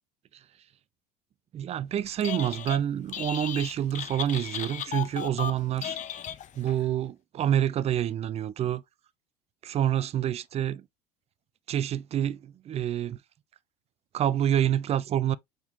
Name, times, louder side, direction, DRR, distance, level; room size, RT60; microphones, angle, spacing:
voice 1, 1.5-6.0 6.6-8.8 9.6-10.8 11.7-13.2 14.1-15.4, right 10 dB, 30° right, 0.4 m, -27 dB
Telephone, 2.1-2.8 3.1-6.8, left 9 dB, 40° left, 0.6 m, -36 dB
4.7 x 3.7 x 2.6 m
hypercardioid pair, 75°, 20 cm